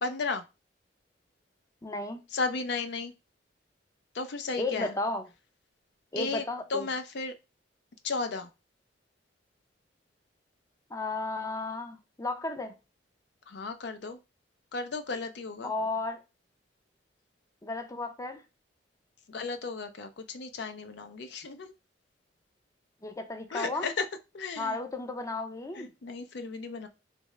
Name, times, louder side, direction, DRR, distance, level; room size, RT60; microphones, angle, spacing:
voice 1, 0.0-0.4 2.3-3.1 4.1-4.9 6.2-6.4 6.7-7.3 8.0-8.5 13.5-14.2 14.7-15.7 19.3-21.7 23.5-24.1 24.3-24.8 25.7-26.9, left 4 dB, 70° left, 0.5 m, -34 dB
voice 2, 1.8-2.2 4.6-5.2 6.1-6.9 10.9-12.7 15.6-16.2 17.6-18.4 23.0-23.9 24.6-25.9, left 2 dB, 20° left, 0.5 m, -34 dB
3.6 x 3.4 x 3.1 m
head